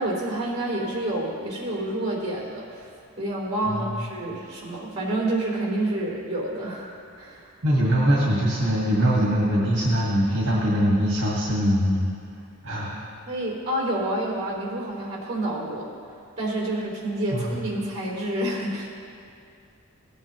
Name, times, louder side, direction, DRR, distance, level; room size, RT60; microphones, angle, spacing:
voice 1, 0.0-2.9 3.2-7.5 13.3-15.9 16.4-18.9, right 1 dB, 30° right, -4 dB, 3.3 m, -28 dB
voice 2, 3.6-4.1 7.6-12.1 12.6-13.0 17.3-17.5, equal, 55° right, -5 dB, 1.9 m, -22 dB
17.5 x 9.7 x 3.1 m, 2.4 s
head